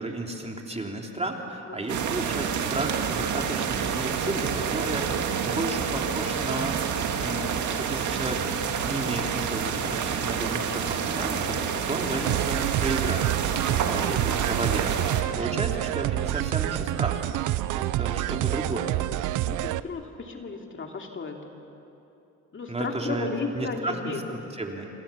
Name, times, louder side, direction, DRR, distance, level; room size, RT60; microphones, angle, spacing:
voice 1, 0.0-5.1 5.4-6.9 7.2-8.5 8.8-17.3 17.7-18.9 22.7-23.3 23.5-24.9, right 2 dB, 20° right, 1 dB, 3.5 m, -33 dB
sound 1, 1.9-15.2, right 7 dB, 70° right, 2.2 m, -28 dB
sound 2, 12.3-19.8, right 15 dB, 85° right, 0.6 m, -27 dB
voice 2, 13.7-14.1 14.6-14.7 15.5-15.7 19.4-21.5 22.5-24.4, left 4 dB, 40° left, 2 dB, 2.7 m, -35 dB
27.0 x 27.0 x 7.2 m, 2.9 s
cardioid pair, 90°, 30 cm